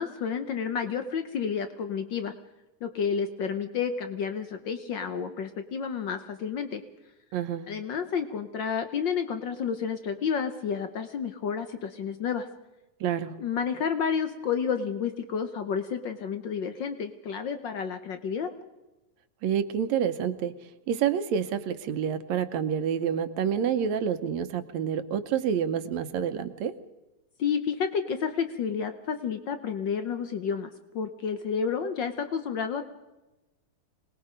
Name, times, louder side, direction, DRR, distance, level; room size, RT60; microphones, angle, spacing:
voice 1, 0.0-2.3 2.8-6.8 7.7-12.5 13.4-18.5 27.4-32.8, left 6 dB, 90° left, 8 dB, 1.0 m, -30 dB
voice 2, 7.3-7.7 13.0-13.4 19.4-20.5 20.9-26.8, right 8 dB, 70° right, 10 dB, 2.0 m, -28 dB
26.0 x 20.0 x 5.2 m, 1.0 s
omnidirectional pair, 3.5 m